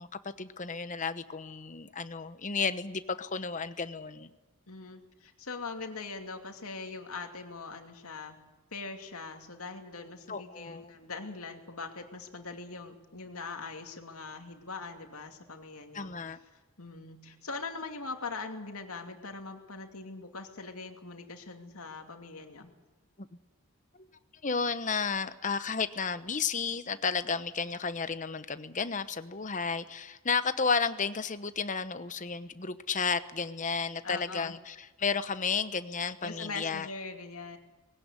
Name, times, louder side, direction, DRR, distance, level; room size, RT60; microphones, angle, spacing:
voice 1, 0.0-4.3 10.3-10.9 15.9-16.4 24.4-36.9, left 5 dB, 35° left, 12 dB, 1.0 m, -32 dB
voice 2, 4.7-8.4 8.7-22.7 34.0-34.6 36.2-37.6, left 4 dB, 80° left, 5 dB, 2.7 m, -42 dB
20.0 x 17.5 x 9.8 m, 1.2 s
head